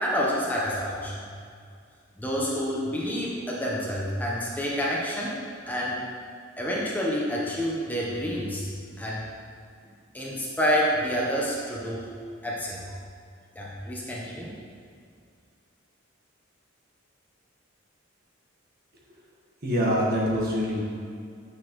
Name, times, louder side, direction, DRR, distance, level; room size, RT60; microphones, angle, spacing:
voice 1, 0.0-1.2 2.2-5.4 5.7-6.0 6.6-8.6 9.0-9.3 10.1-12.1 12.4-12.8 13.5-14.5, equal, 10° left, -5 dB, 0.8 m, -28 dB
voice 2, 19.6-20.8, equal, 50° right, -4 dB, 1.3 m, -24 dB
7.0 x 6.3 x 3.0 m, 2.2 s
head